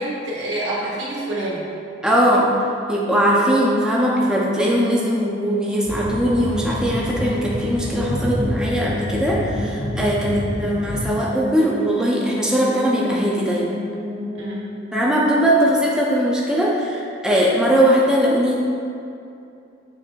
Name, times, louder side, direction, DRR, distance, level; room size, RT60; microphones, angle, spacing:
voice 1, 0.0-1.7 10.3-10.5 14.3-14.6, right 1 dB, 75° right, -7 dB, 1.1 m, -27 dB
voice 2, 2.0-2.5 2.9-13.8 14.9-18.6, equal, 5° right, -5 dB, 0.4 m, -20 dB
sound 1, 3.2-16.1, left 2 dB, 45° right, 1.1 m, -30 dB
sound 2, 5.8-11.1, left 1 dB, 75° left, 1.3 m, -28 dB
7.1 x 2.5 x 2.2 m, 2.6 s
head